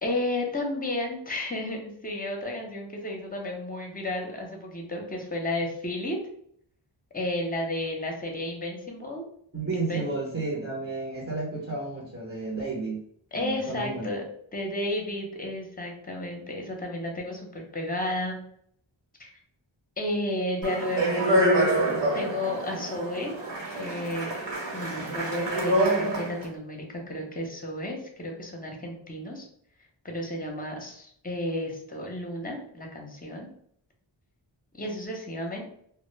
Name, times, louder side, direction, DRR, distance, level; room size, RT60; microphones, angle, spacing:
voice 1, 0.0-6.2 7.1-9.2 9.7-10.1 13.3-14.2 14.5-18.4 19.2-19.3 20.0-21.7 22.1-23.3 23.8-24.3 24.7-29.5 30.0-33.5 34.7-35.6, left 1 dB, 20° left, 1 dB, 0.7 m, -32 dB
voice 2, 9.5-13.0 13.3-14.1, right 3 dB, 30° right, -4 dB, 0.8 m, -32 dB
Speech, 20.6-26.4, right 1 dB, 60° right, 1.2 m, -26 dB
2.1 x 2.1 x 3.1 m, 0.66 s
wide cardioid pair, 45°, 49 cm